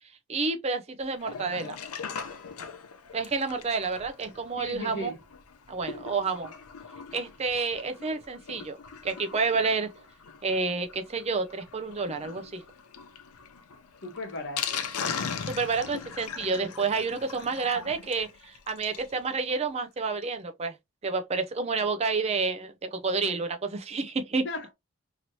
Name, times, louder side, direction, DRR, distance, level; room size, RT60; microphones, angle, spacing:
voice 1, 0.3-1.8 3.1-5.1 5.7-6.5 7.1-8.8 9.0-9.9 10.4-12.6 15.5-20.8 21.0-24.5, right 4 dB, 30° right, 0.4 m, -29 dB
Sink (filling or washing), 1.1-19.1 19.5-19.6 19.8-19.9 20.2-20.3, left 6 dB, 85° left, 0.5 m, -40 dB
voice 2, 4.6-5.2 14.0-14.9 24.4-24.7, left 1 dB, 55° left, 1.0 m, -36 dB
2.9 x 2.8 x 2.7 m
head